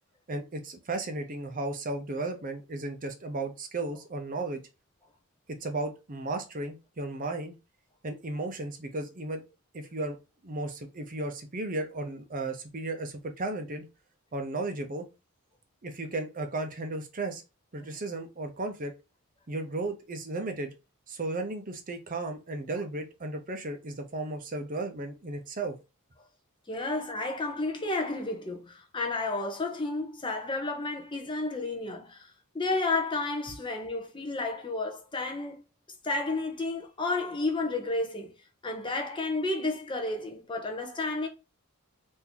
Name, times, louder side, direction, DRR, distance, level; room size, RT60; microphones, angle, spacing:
voice 1, 0.3-4.6 5.6-7.5 8.0-9.4 9.7-10.2 10.4-13.9 14.3-15.0 15.8-17.4 17.7-18.9 19.5-20.7 21.1-25.8, right 2 dB, 40° right, 0.6 m, -34 dB
voice 2, 26.7-35.6 36.0-38.3 38.6-41.3, left 2 dB, 20° left, 0.6 m, -31 dB
3.7 x 2.6 x 2.8 m
head